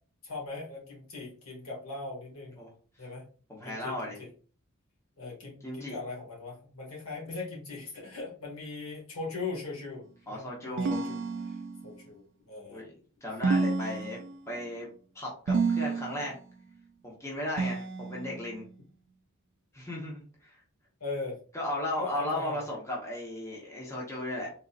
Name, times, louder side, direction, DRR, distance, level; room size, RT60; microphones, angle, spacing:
voice 1, 0.2-2.6 3.0-3.2 3.6-4.3 5.2-11.2 11.5-11.6 11.8-12.8 21.0-21.4 22.0-22.7, left 3 dB, 75° left, -3 dB, 1.9 m, -39 dB
voice 2, 3.5-4.2 5.6-6.0 10.3-11.0 12.7-12.9 13.2-14.2 14.5-14.9 15.1-16.4 17.0-18.7 19.7-20.6 21.5-24.5, left 1 dB, 15° left, -4 dB, 1.0 m, -36 dB
sound 1, 10.8-12.0 13.4-14.6 15.5-16.4 17.6-18.5, right 4 dB, 55° right, 0.3 m, -30 dB
3.8 x 3.7 x 2.5 m, 0.41 s
head